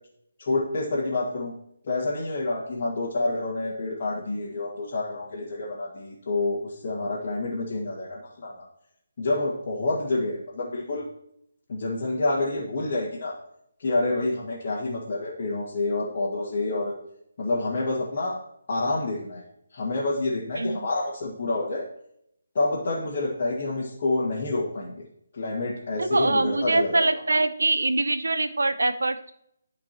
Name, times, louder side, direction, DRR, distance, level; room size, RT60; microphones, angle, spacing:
voice 1, 0.4-1.5 1.8-8.6 9.2-11.0 11.7-13.3 13.8-16.9 17.4-18.4 18.7-19.4 19.7-21.8 22.5-24.9 25.3-27.1, left 2 dB, 40° left, -6 dB, 2.0 m, -28 dB
voice 2, 20.6-20.9 26.0-29.3, right 2 dB, 65° right, 12 dB, 0.7 m, -24 dB
13.0 x 5.3 x 3.0 m, 0.73 s
figure-of-eight pair, 145°, 0 cm